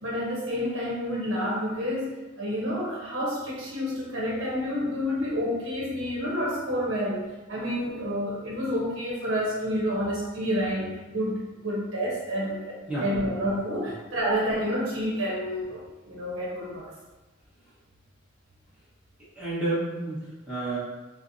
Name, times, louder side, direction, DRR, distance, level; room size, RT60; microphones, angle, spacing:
voice 1, 0.0-16.9, equal, 75° right, -4 dB, 0.8 m, -29 dB
voice 2, 12.9-13.3 19.3-20.8, right 2 dB, 5° right, -11 dB, 1.1 m, -30 dB
4.3 x 2.1 x 2.6 m, 1.2 s
head